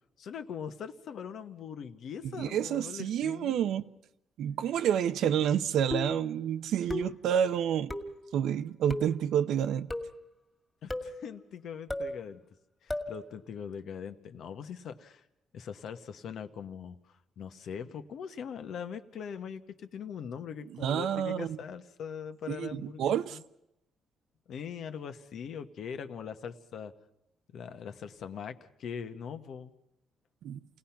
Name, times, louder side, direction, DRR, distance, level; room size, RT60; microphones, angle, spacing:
voice 1, 0.2-3.7 10.8-12.4 12.8-15.2 15.5-23.4 24.5-26.9 27.5-29.7, left 7 dB, 70° left, 1.2 m, -41 dB
voice 2, 2.4-3.8 4.4-7.9 8.3-9.9 20.8-21.6 22.5-23.4 30.4-30.6, right 9 dB, 80° right, 0.7 m, -29 dB
sound 1, 5.9-6.3 6.9-7.3 7.9-8.2 8.9-9.2 9.9-10.2 10.9-11.2 11.9-12.2 12.9-13.2, left 1 dB, 15° left, 2.1 m, -35 dB
28.5 x 18.0 x 5.9 m
cardioid pair, 90°, 0 cm